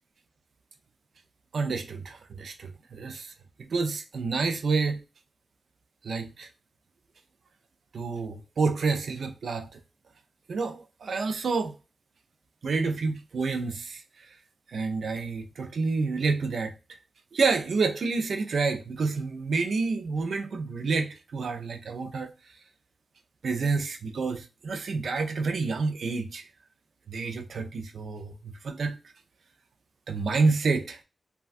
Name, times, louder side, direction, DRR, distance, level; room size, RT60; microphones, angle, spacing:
voice 1, 1.5-3.3 3.6-5.0 6.0-6.5 7.9-9.8 10.5-11.7 12.6-14.0 14.7-17.0 17.3-22.3 23.4-26.5 27.1-29.0 30.1-31.0, right 4 dB, 80° right, 0.4 m, -29 dB
3.1 x 2.3 x 2.4 m
wide cardioid pair, 100°, 0 cm